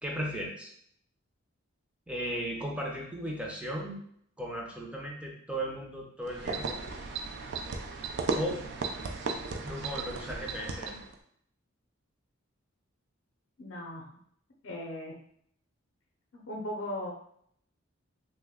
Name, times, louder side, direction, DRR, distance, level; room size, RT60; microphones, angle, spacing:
voice 1, 0.0-0.7 2.1-4.0 4.4-6.8 8.3-8.6 9.6-11.0, equal, 5° right, -1 dB, 0.5 m, -36 dB
sound 1, 6.3-11.1, right 4 dB, 60° right, 0.4 m, -35 dB
voice 2, 13.6-14.1 14.6-15.1 16.3-17.1, left 1 dB, 65° left, -1 dB, 0.6 m, -37 dB
3.0 x 2.1 x 3.5 m, 0.67 s
head